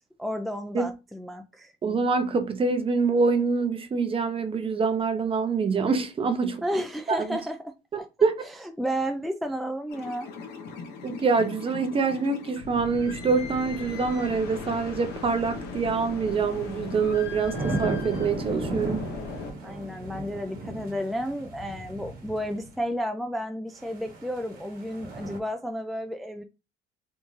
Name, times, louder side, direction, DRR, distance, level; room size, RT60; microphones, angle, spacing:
voice 1, 0.2-1.7 6.6-7.6 7.9-8.1 8.8-10.3 19.6-26.4, equal, ahead, 0.4 m, -32 dB
voice 2, 1.8-6.6 7.1-7.4 8.2-8.4 11.0-19.1, right 4 dB, 30° right, 0.7 m, -25 dB
sound 1, 9.9-19.5, left 4 dB, 75° left, 1.0 m, -38 dB
sound 2, 16.5-22.7 23.8-25.4, right 2 dB, 60° right, 1.2 m, -36 dB
3.5 x 2.6 x 3.1 m
cardioid pair, 110°, 17 cm